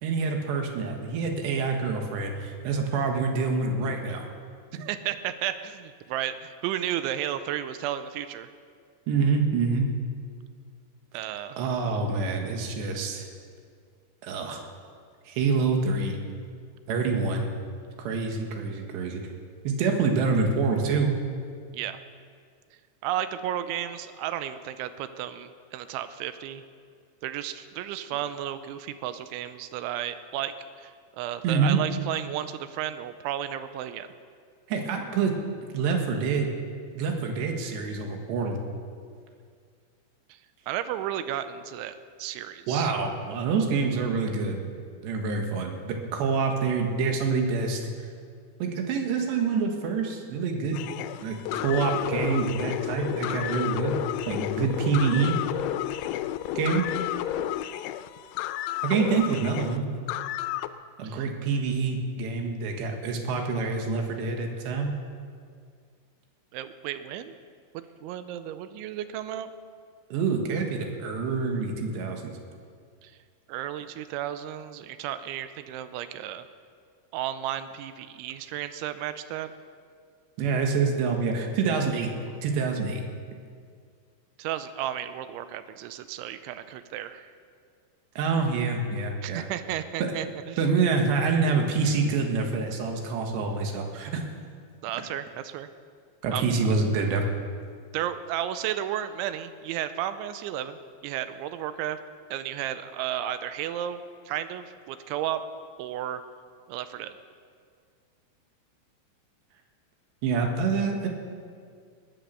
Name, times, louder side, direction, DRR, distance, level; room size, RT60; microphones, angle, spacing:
voice 1, 0.0-4.3 9.1-9.9 11.6-13.3 14.2-14.6 15.3-16.2 16.9-17.5 18.0-19.2 19.7-21.2 31.4-31.8 34.7-35.4 35.7-36.5 36.9-38.6 42.7-44.6 45.0-47.8 48.6-50.8 51.2-55.4 56.6-56.8 58.8-59.9 61.0-64.9 70.1-72.3 80.4-82.1 82.4-83.0 88.2-89.4 90.0-90.1 90.6-94.2 96.2-97.2 110.2-111.1, right 4 dB, 70° right, 3 dB, 3.6 m, -26 dB
voice 2, 4.7-8.5 11.1-11.6 21.7-22.0 23.0-26.6 27.2-34.1 40.3-40.4 40.7-43.0 61.0-61.3 66.5-67.4 67.7-69.5 73.0-73.1 73.5-76.5 77.1-79.5 84.4-87.3 89.2-90.6 94.8-95.7 96.3-96.5 97.9-102.0 102.3-105.4 105.8-106.2 106.7-107.1, right 11 dB, 85° right, 11 dB, 3.0 m, -33 dB
sound 1, 50.7-60.7, left 13 dB, 85° left, 3.0 m, -31 dB
20.0 x 10.0 x 6.8 m, 2.1 s
omnidirectional pair, 5.4 m